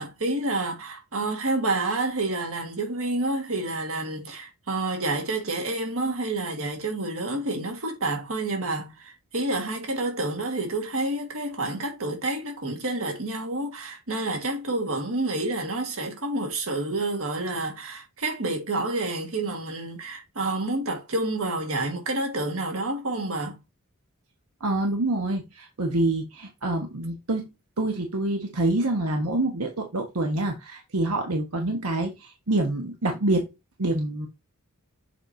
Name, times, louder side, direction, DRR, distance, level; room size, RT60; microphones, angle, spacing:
voice 1, 0.0-23.6, right 2 dB, 65° right, 1.8 m, -29 dB
voice 2, 24.6-33.5 33.8-34.3, right 2 dB, 85° right, 1.3 m, -26 dB
7.2 x 4.8 x 2.7 m
head